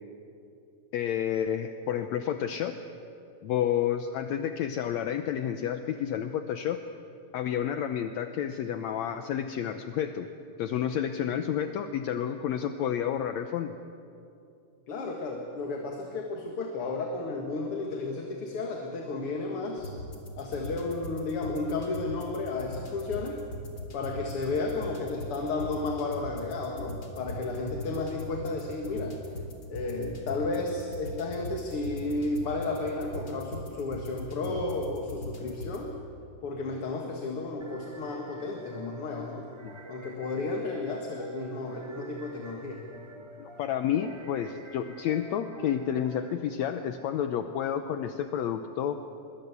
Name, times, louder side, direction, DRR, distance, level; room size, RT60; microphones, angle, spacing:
voice 1, 0.9-2.8 3.4-6.8 7.3-10.3 10.6-13.7 43.4-49.0, left 9 dB, 70° left, 8 dB, 1.9 m, -30 dB
voice 2, 14.9-19.9 20.4-23.4 23.9-29.2 29.7-35.9 36.4-39.5 39.9-42.8, left 3 dB, 50° left, 2 dB, 2.5 m, -33 dB
sound 1, 19.8-35.8, left 1 dB, 35° left, 3.4 m, -41 dB
sound 2, 37.6-46.3, right 2 dB, 35° right, 0.4 m, -48 dB
24.0 x 23.0 x 8.2 m, 2.7 s
omnidirectional pair, 3.5 m